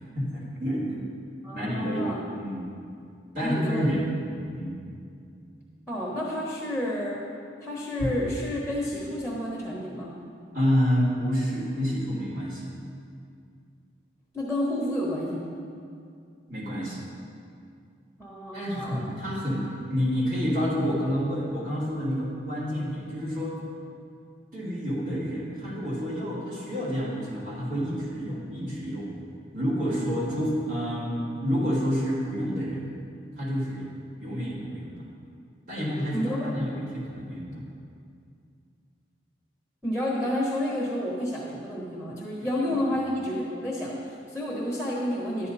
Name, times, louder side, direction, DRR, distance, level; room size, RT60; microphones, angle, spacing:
voice 1, 0.1-1.0 1.5-2.7 3.3-4.1 4.5-4.8 10.5-12.7 16.5-17.0 18.5-23.5 24.5-29.1 29.5-32.9 33.4-33.9 34.2-35.0 35.7-37.6 42.7-42.8, equal, 45° right, -7 dB, 2.7 m, -29 dB
voice 2, 1.4-2.2 3.4-4.0 5.9-7.2 7.6-10.1 14.3-15.5 18.2-19.0 36.1-36.5 39.8-45.5, left 1 dB, 5° right, -5 dB, 1.2 m, -30 dB
11.5 x 9.4 x 4.1 m, 2.4 s
head